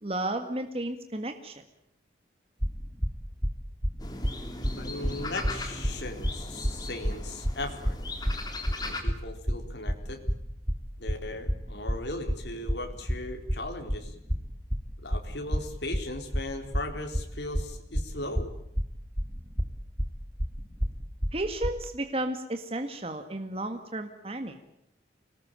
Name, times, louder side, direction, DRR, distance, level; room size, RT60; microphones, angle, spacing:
voice 1, 0.0-1.6 21.3-24.6, right 1 dB, 35° right, 6 dB, 1.8 m, -33 dB
sound 1, 2.6-21.8, equal, 15° right, 2.4 m, -30 dB
sound 2, 4.0-9.0, left 2 dB, 20° left, 3.3 m, -39 dB
voice 2, 4.8-8.0 8.8-10.2 11.0-14.1 15.0-18.5, left 2 dB, 75° left, 4 dB, 4.1 m, -38 dB
25.5 x 19.5 x 9.0 m, 0.76 s
head